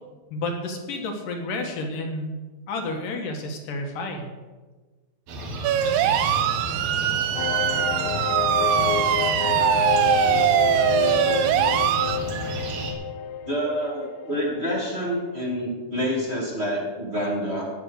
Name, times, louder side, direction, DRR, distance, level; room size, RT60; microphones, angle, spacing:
voice 1, 0.3-2.4 2.7-4.3, left 2 dB, 65° left, 3 dB, 3.0 m, -30 dB
sound 1, 5.3-12.9, right 2 dB, 55° right, 2.4 m, -32 dB
sound 2, 5.6-12.2, right 11 dB, 75° right, 2.2 m, -22 dB
sound 3, 7.3-14.8 15.1-15.2 15.4-15.5, left 8 dB, 80° left, 1.9 m, -28 dB
voice 2, 13.5-17.7, equal, 20° right, -3 dB, 2.2 m, -27 dB
18.0 x 6.7 x 6.5 m, 1.3 s
omnidirectional pair, 4.3 m